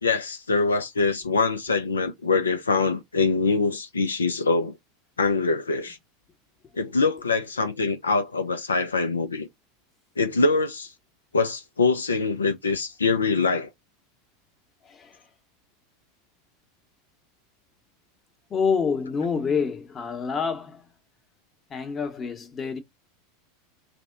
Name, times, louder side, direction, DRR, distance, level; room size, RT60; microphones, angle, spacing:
voice 1, 0.0-4.8 5.2-6.0 6.8-9.5 10.2-10.9 11.3-13.7, left 3 dB, 90° left, 0.3 m, -24 dB
voice 2, 14.8-15.2 18.5-20.9 21.7-22.8, left 5 dB, 30° left, 0.8 m, -27 dB
3.4 x 2.1 x 3.8 m
hypercardioid pair, 90°, 0 cm